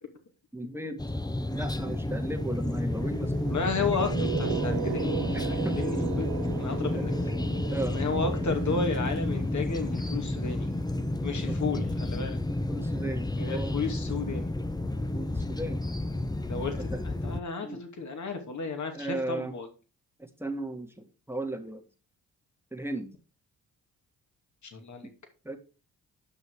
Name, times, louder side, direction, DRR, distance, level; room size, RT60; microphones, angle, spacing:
voice 1, 0.5-1.0 1.5-3.6 5.3-5.8 6.8-7.1 7.7-8.0 11.5-11.6 12.7-13.8 15.1-15.8 16.8-17.0 17.6-17.8 18.9-19.5 20.2-21.8 22.7-23.1 25.4-25.6, right 2 dB, 5° right, 4 dB, 2.0 m, -35 dB
sound 1, 1.0-17.4, left 1 dB, 10° left, 0.9 m, -31 dB
sound 2, 3.0-11.1, right 12 dB, 70° right, 0.8 m, -37 dB
voice 2, 3.5-6.3 6.6-7.1 7.9-10.7 11.2-12.4 13.4-14.5 16.5-19.7 24.6-25.1, left 4 dB, 50° left, 5 dB, 2.6 m, -33 dB
10.5 x 6.2 x 4.8 m, 0.33 s
supercardioid pair, 50°, 36 cm